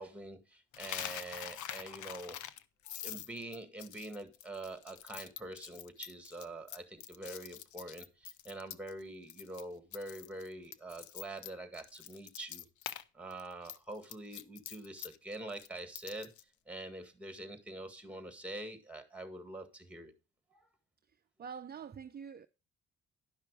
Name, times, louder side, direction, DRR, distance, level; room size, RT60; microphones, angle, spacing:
voice 1, 0.0-2.4 2.8-12.6 13.1-16.3 16.7-20.1 20.5-20.6, right 1 dB, 5° right, 1.8 m, -45 dB
Coin (dropping), 0.7-9.0 9.3-9.6 9.9-13.0 13.3-16.4, left 11 dB, 75° left, 0.7 m, -45 dB
voice 2, 21.1-22.5, right 7 dB, 30° right, 0.6 m, -46 dB
11.0 x 5.8 x 4.8 m
cardioid pair, 90°, 30 cm